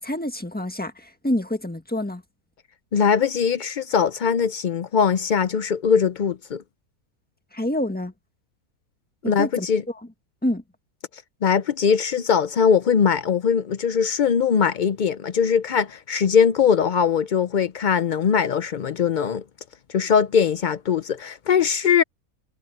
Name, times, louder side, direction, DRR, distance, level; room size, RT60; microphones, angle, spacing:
voice 1, 0.0-2.2 7.5-8.1 9.2-9.7 10.4-10.6, left 1 dB, 5° left, 1.5 m, -27 dB
voice 2, 2.9-6.6 9.3-9.8 11.4-19.4 19.9-22.0, left 7 dB, 85° left, 0.4 m, -21 dB
omnidirectional pair, 1.6 m